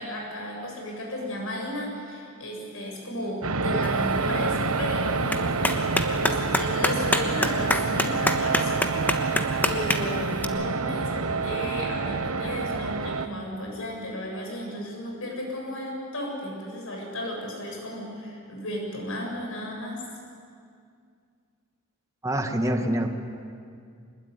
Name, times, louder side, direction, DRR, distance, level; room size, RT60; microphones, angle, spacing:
voice 1, 0.0-5.8 6.1-20.0, left 1 dB, 65° left, 0 dB, 7.5 m, -34 dB
sound 1, 3.4-13.3, right 4 dB, 75° right, 1.1 m, -27 dB
Clapping, 3.8-10.4, left 1 dB, 10° left, 1.2 m, -29 dB
voice 2, 22.2-23.1, right 1 dB, 15° right, 4 dB, 1.5 m, -25 dB
25.5 x 21.0 x 9.7 m, 2.3 s
head